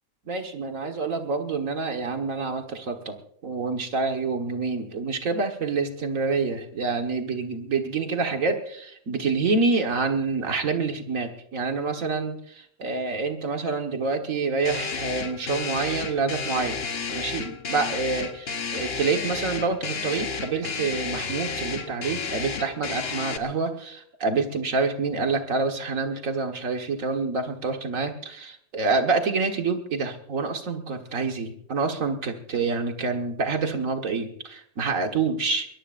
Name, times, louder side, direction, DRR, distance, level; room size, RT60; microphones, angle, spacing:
voice 1, 0.3-3.2 3.4-16.8 17.1-35.7, right 4 dB, 85° right, 4 dB, 1.9 m, -27 dB
sound 1, 14.6-23.4, left 5 dB, 50° left, 1.3 m, -32 dB
22.0 x 22.0 x 2.6 m, 0.65 s
omnidirectional pair, 1.4 m